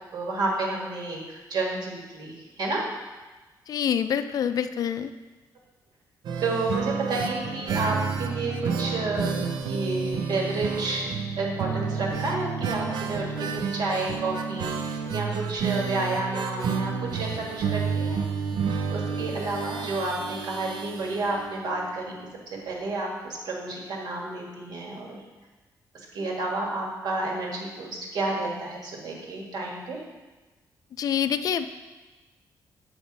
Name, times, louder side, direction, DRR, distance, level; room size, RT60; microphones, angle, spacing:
voice 1, 0.1-2.3 2.6-2.8 6.4-9.3 9.6-11.1 11.4-18.2 18.9-22.1 22.6-25.2 26.1-30.0, right 2 dB, 70° right, -1 dB, 1.6 m, -30 dB
voice 2, 3.7-5.1 31.0-31.7, left 8 dB, 55° left, 11 dB, 0.4 m, -26 dB
sound 1, 6.2-21.9 22.2-22.3 22.6-22.7, right 5 dB, 90° right, 0.6 m, -30 dB
7.1 x 6.0 x 4.0 m, 1.2 s
cardioid pair, 145°, 7 cm